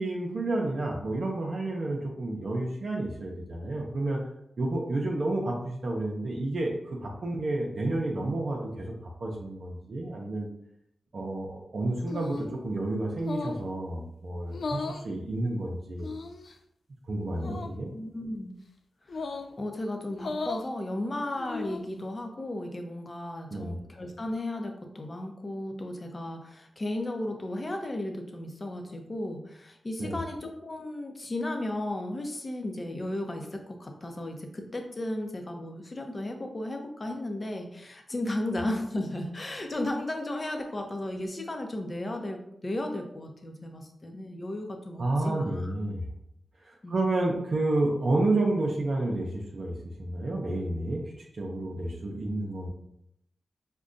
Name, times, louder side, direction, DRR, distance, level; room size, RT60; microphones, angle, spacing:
voice 1, 0.0-4.2 4.6-8.9 9.2-10.5 11.1-16.1 17.1-17.9 23.5-23.8 30.0-30.2 45.0-46.0 46.6-52.7, right 2 dB, 65° right, -2 dB, 0.6 m, -30 dB
sound 1, 12.1-12.6 13.2-13.7 14.5-15.1 16.0-16.5 17.4-17.7 19.1-19.5 20.1-20.7 21.4-21.9, left 3 dB, 70° left, 0.3 m, -36 dB
voice 2, 17.9-18.6 19.1-19.3 19.6-46.1 46.8-47.0, left 1 dB, 40° left, 4 dB, 0.6 m, -35 dB
5.1 x 2.2 x 2.5 m, 0.77 s
cardioid pair, 45°, 0 cm